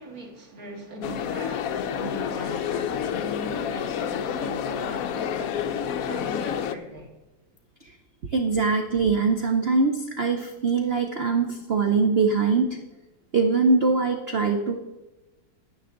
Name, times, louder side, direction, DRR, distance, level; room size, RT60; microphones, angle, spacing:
voice 1, 0.0-7.1, right 1 dB, 50° right, 1 dB, 2.2 m, -40 dB
sound 1, 1.0-6.8, left 8 dB, 75° left, 0.8 m, -29 dB
voice 2, 8.3-12.8 13.3-14.8, right 4 dB, 85° right, 4 dB, 0.5 m, -22 dB
9.7 x 9.6 x 3.8 m, 1.1 s
omnidirectional pair, 2.1 m